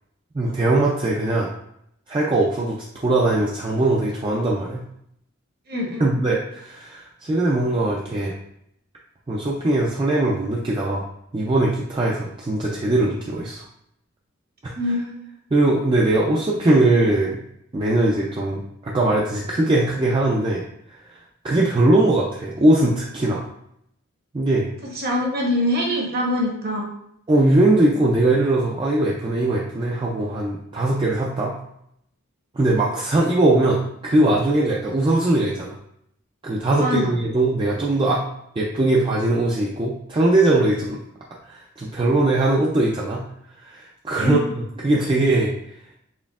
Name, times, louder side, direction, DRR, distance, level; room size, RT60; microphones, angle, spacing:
voice 1, 0.3-1.5 2.1-4.8 6.0-8.3 9.3-11.1 11.3-13.6 14.6-14.7 15.5-17.4 17.7-20.6 20.9-21.0 21.4-23.5 24.3-24.7 27.3-31.5 32.5-35.8 36.4-38.3 38.6-41.0 41.5-43.2 43.6-45.5, right 2 dB, 25° right, -3 dB, 0.3 m, -20 dB
voice 2, 5.7-6.1 14.8-15.2 24.9-26.9 36.8-37.1 44.2-44.4, left 1 dB, 45° right, 0 dB, 1.0 m, -24 dB
4.3 x 3.4 x 2.3 m, 0.74 s
head